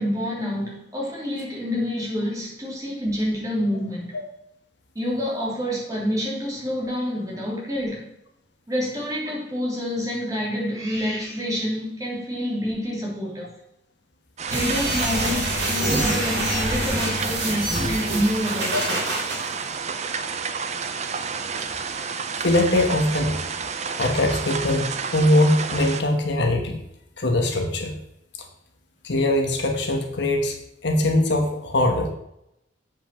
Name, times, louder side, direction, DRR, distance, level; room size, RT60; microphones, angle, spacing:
voice 1, 0.0-4.1 4.9-8.0 8.7-13.5 14.5-19.0, equal, 20° right, -4 dB, 2.9 m, -27 dB
sound 1, 14.4-26.0, right 5 dB, 35° right, 0.6 m, -30 dB
sound 2, 14.5-19.4, right 1 dB, 60° right, 3.5 m, -26 dB
voice 2, 22.4-23.4 24.0-26.8 27.2-27.9 29.0-30.6 30.8-32.1, left 1 dB, 65° left, 3 dB, 1.3 m, -21 dB
7.7 x 5.6 x 5.9 m, 0.79 s
head